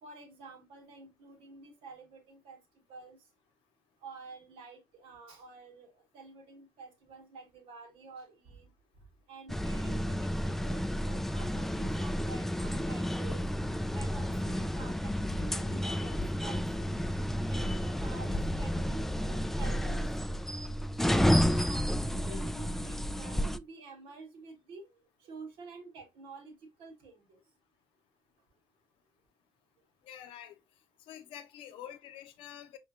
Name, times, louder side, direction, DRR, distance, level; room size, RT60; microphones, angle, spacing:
voice 1, 0.0-2.6 2.9-3.2 4.0-8.7 9.3-13.4 13.9-16.9 17.5-20.2 21.0-24.9 25.2-27.4, right 3 dB, 65° right, 1.1 m, -49 dB
sound 1, 9.5-23.6, equal, 5° left, 0.3 m, -31 dB
voice 2, 30.0-30.6 31.1-32.8, left 10 dB, 65° left, 0.6 m, -47 dB
5.3 x 3.1 x 2.5 m
figure-of-eight pair, 45°, 10 cm